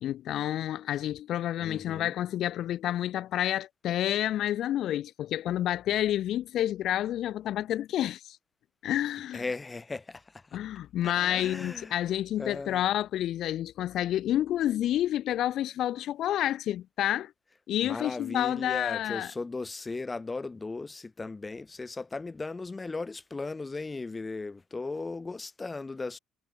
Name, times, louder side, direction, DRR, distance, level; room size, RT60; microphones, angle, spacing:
voice 1, 0.0-8.4 8.8-9.4 10.5-17.3 17.7-19.3, left 12 dB, 45° left, 0.9 m, -29 dB
voice 2, 1.6-2.2 9.3-10.6 11.0-12.0 12.4-12.9 17.8-26.2, left 3 dB, 15° left, 3.9 m, -37 dB
cardioid pair, 165°, 0 cm